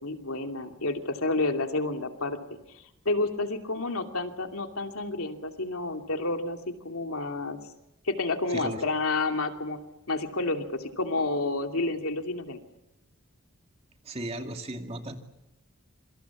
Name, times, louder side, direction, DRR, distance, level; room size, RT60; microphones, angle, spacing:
voice 1, 0.0-2.4 2.7-6.6 6.8-7.6 8.0-9.8 10.1-12.6, left 2 dB, 85° left, 5 dB, 2.7 m, -30 dB
voice 2, 14.1-15.2, right 1 dB, 30° right, 5 dB, 2.5 m, -35 dB
27.5 x 25.0 x 7.2 m, 0.91 s
head